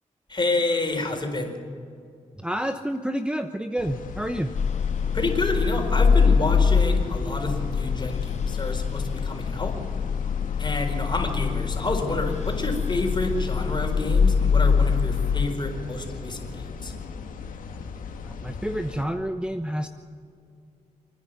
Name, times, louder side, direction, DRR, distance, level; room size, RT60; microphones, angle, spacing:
voice 1, 0.3-1.5 5.1-9.7 10.6-16.9, left 2 dB, 35° left, 3 dB, 4.4 m, -29 dB
voice 2, 2.4-4.5 18.2-19.9, equal, 5° right, 8 dB, 0.9 m, -29 dB
sound 1, 3.8-19.0, left 5 dB, 90° left, 1.9 m, -38 dB
sound 2, 4.5-15.5, left 6 dB, 55° left, 0.8 m, -24 dB
28.0 x 10.0 x 9.3 m, 2.4 s
cardioid pair, 70°, 14 cm